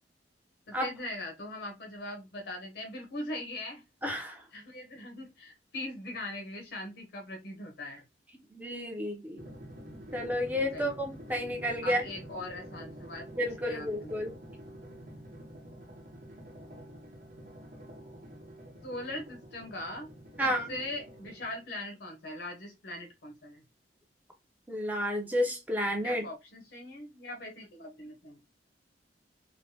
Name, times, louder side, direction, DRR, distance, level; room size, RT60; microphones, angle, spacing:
voice 1, 0.7-3.8 4.5-8.0 10.7-10.8 11.8-14.1 18.8-20.1 20.4-23.6 26.0-28.4, left 1 dB, 65° left, 0.7 m, -41 dB
voice 2, 4.0-4.4 8.5-9.4 10.1-12.1 13.4-14.4 20.4-20.8 24.7-26.2, equal, 10° right, 0.5 m, -31 dB
Drum, 9.4-21.7, equal, 50° right, 1.0 m, -48 dB
3.1 x 2.1 x 2.7 m
head